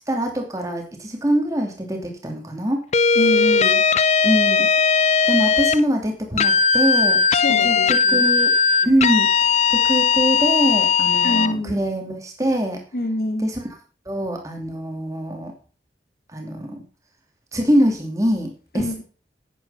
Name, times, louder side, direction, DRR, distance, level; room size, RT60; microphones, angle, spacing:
voice 1, 0.1-2.8 4.2-7.2 7.5-8.5 8.8-12.8 13.4-13.7 14.1-15.5 16.3-16.8 17.5-19.0, equal, 20° right, 2 dB, 2.6 m, -24 dB
sound 1, 2.9-5.8 6.4-11.5, left 5 dB, 35° left, 0.5 m, -18 dB
voice 2, 3.1-3.8 7.3-8.3 11.2-11.8 12.9-13.5 18.7-19.0, left 1 dB, 55° left, 6 dB, 2.3 m, -26 dB
9.5 x 9.1 x 5.6 m, 0.37 s
head